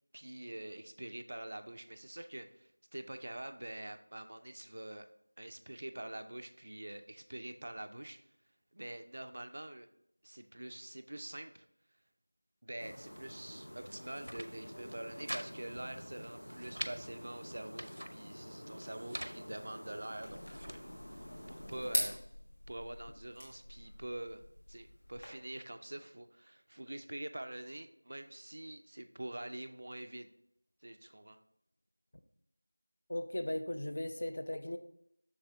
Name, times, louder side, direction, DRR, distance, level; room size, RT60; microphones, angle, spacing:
voice 1, 0.1-5.1 5.4-8.2 8.7-9.9 10.2-11.7 12.6-20.9 21.5-22.2 22.7-30.3 30.8-31.4, right 1 dB, 35° right, 9 dB, 0.3 m, -45 dB
sound 1, 12.8-22.2, equal, 85° left, 0.8 m, -49 dB
sound 2, 14.0-14.5 14.8-15.5 15.8-15.9 16.2-17.0 17.5-18.1 18.8-19.4 20.0-20.8, equal, 80° right, 0.6 m, -44 dB
sound 3, 20.2-25.2, equal, 60° left, 2.8 m, -42 dB
voice 2, 33.1-34.8, left 1 dB, 35° left, 8 dB, 0.4 m, -37 dB
7.0 x 6.5 x 2.7 m, 0.76 s
figure-of-eight pair, 175°, 0 cm